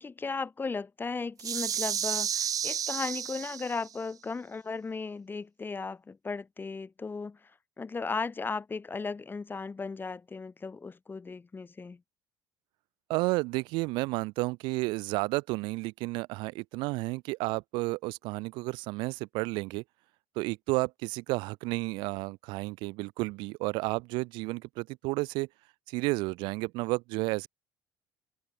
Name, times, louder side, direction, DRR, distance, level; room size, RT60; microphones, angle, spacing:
voice 1, 0.0-7.5 7.8-12.0, left 4 dB, 25° left, 6.6 m, -36 dB
sound 1, 1.4-4.0, right 9 dB, 45° right, 1.0 m, -32 dB
voice 2, 13.1-19.8 20.4-25.5 25.9-27.5, right 24 dB, 85° right, 2.9 m, -32 dB
supercardioid pair, 90°, 8 cm